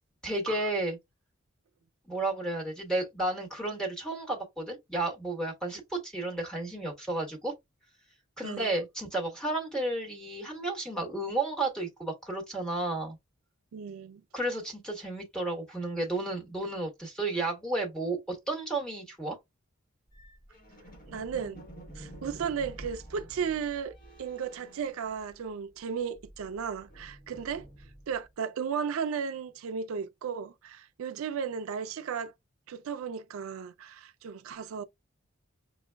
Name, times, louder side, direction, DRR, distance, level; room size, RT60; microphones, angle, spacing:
voice 1, 0.2-1.0 2.1-7.5 8.4-13.2 14.3-19.4, right 2 dB, 5° left, 1.2 m, -32 dB
voice 2, 8.4-8.7 13.7-14.2 21.1-21.6 22.0-27.7 28.1-32.3 32.7-34.8, right 6 dB, 80° right, 0.4 m, -35 dB
sound 1, 20.1-25.7 26.0-28.3, right 1 dB, 40° left, 1.1 m, -49 dB
6.1 x 2.2 x 2.2 m
head